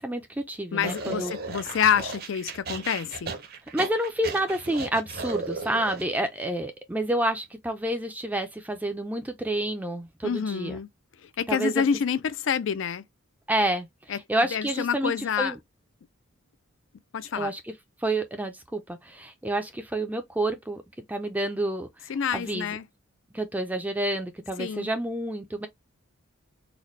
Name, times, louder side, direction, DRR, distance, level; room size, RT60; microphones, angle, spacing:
voice 1, 0.0-1.3 3.7-10.8 11.5-11.8 13.5-15.6 17.3-17.7 18.0-20.8 21.1-21.9 22.3-22.7 23.3-25.7, right 1 dB, 10° right, 0.4 m, -29 dB
voice 2, 0.7-3.3 10.2-10.9 11.4-13.0 14.1-14.2 14.5-15.5 17.1-17.5 22.1-22.8 24.6-24.9, left 7 dB, 65° left, 0.4 m, -27 dB
sound 1, 0.8-6.2, right 4 dB, 50° right, 0.7 m, -36 dB
4.0 x 2.2 x 3.1 m
head